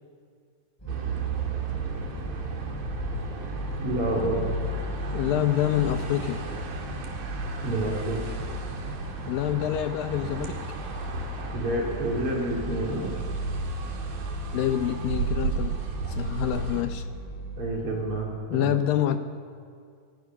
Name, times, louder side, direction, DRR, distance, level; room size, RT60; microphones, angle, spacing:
sound 1, 0.8-18.1, left 1 dB, 5° left, 6.3 m, -36 dB
sound 2, 0.9-16.8, right 5 dB, 70° right, 3.9 m, -35 dB
voice 1, 3.8-4.5 7.6-8.2 11.5-13.1 17.6-18.8, right 1 dB, 35° right, -1 dB, 3.7 m, -28 dB
voice 2, 5.1-6.4 9.3-10.6 14.5-17.0 18.5-19.2, left 11 dB, 75° left, 8 dB, 2.4 m, -27 dB
22.0 x 20.5 x 6.1 m, 2.2 s
omnidirectional pair, 4.4 m